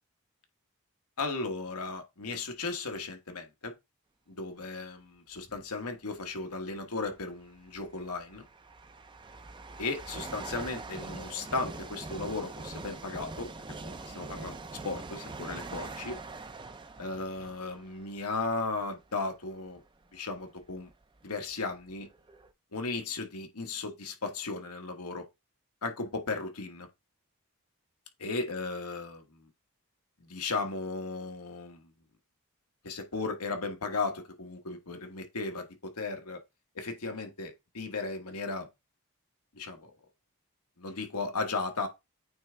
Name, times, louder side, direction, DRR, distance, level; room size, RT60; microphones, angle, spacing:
voice 1, 1.2-3.7 4.3-8.4 9.8-13.5 13.8-16.2 17.0-19.8 20.1-20.9 21.2-22.1 22.7-25.2 25.8-26.9 28.2-29.4 30.2-31.9 32.8-36.4 36.7-38.7 39.5-39.9 40.8-41.9, left 3 dB, 85° left, 1.3 m, -36 dB
sound 1, 5.4-5.7 6.8-6.9 7.6-19.0 19.7-19.8 20.6-20.7 20.9-22.5, right 3 dB, 20° right, 0.5 m, -43 dB
8.7 x 3.5 x 3.3 m
head